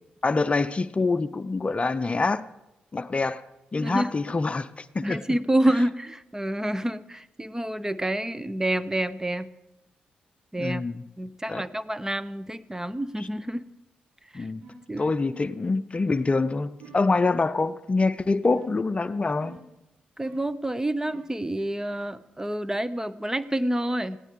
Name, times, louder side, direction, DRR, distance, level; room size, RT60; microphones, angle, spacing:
voice 1, 0.2-2.5 2.9-3.4 3.7-5.2 10.6-11.0 11.5-11.6 13.2-13.3 14.3-14.6 15.0-19.6, left 3 dB, 35° left, 0.6 m, -25 dB
voice 2, 5.0-9.5 10.5-10.8 11.2-13.6 14.3-14.5 14.9-15.1 20.2-24.2, right 1 dB, 15° right, 0.9 m, -28 dB
sound 1, 14.6-14.9 15.3-15.6 16.1-16.3 16.8-17.1 18.5-18.9 19.4-19.8 20.2-20.6 21.1-21.4, right 3 dB, 75° right, 5.9 m, -47 dB
20.0 x 16.5 x 3.7 m
supercardioid pair, 45°, 4 cm